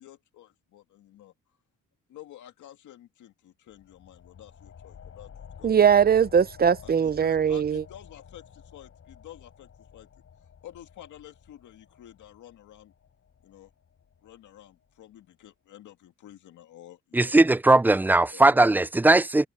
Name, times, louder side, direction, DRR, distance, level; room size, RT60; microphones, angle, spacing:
voice 1, 0.0-1.3 2.1-5.3 5.6-5.7 6.8-10.1 10.6-12.9 13.4-13.7 14.2-17.4 18.3-18.6, left 12 dB, 75° left, 2.0 m, -50 dB
sound 1, 3.7-14.9, left 7 dB, 50° left, 7.3 m, -51 dB
voice 2, 5.6-7.8, right 7 dB, 30° right, 0.7 m, -20 dB
voice 3, 17.1-19.5, right 2 dB, 5° right, 0.3 m, -19 dB
cardioid pair, 90°, 30 cm